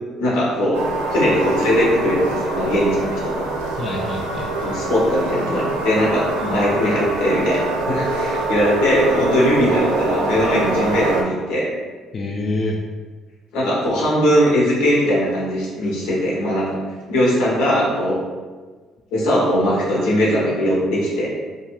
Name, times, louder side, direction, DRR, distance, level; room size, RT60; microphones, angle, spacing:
voice 1, 0.2-0.8 1.1-3.5 4.6-11.7 13.5-16.7 17.1-18.2 19.1-21.3, equal, 85° left, -5 dB, 0.8 m, -20 dB
sound 1, 0.7-11.2, right 2 dB, 90° right, 0.3 m, -24 dB
voice 2, 3.8-4.8 6.4-6.6 12.1-12.8, left 2 dB, 45° left, -2 dB, 0.3 m, -27 dB
2.3 x 2.2 x 2.9 m, 1.4 s
supercardioid pair, 65°, 0 cm